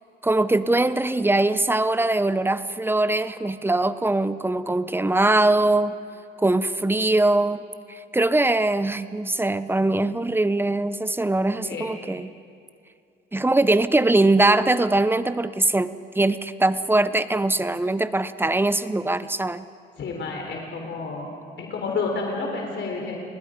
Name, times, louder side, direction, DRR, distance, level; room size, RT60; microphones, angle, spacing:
voice 1, 0.2-5.9 6.4-7.6 7.9-12.3 13.3-19.6, right 2 dB, 10° right, 14 dB, 0.8 m, -22 dB
voice 2, 11.6-11.9 20.0-21.3 21.6-23.2, left 4 dB, 65° left, 1 dB, 4.0 m, -30 dB
29.5 x 20.0 x 5.2 m, 2.5 s
cardioid pair, 90°, 20 cm